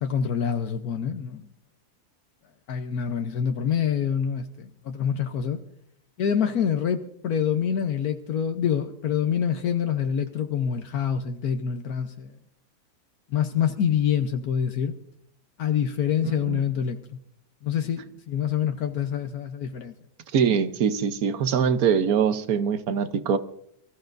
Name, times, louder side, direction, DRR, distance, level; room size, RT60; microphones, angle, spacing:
voice 1, 0.0-1.5 2.7-5.6 6.2-12.4 13.3-14.9 15.6-17.2 17.6-19.9, left 8 dB, 75° left, 1.3 m, -26 dB
voice 2, 20.3-23.4, right 7 dB, 70° right, 1.3 m, -23 dB
24.0 x 14.5 x 2.6 m
omnidirectional pair, 1.6 m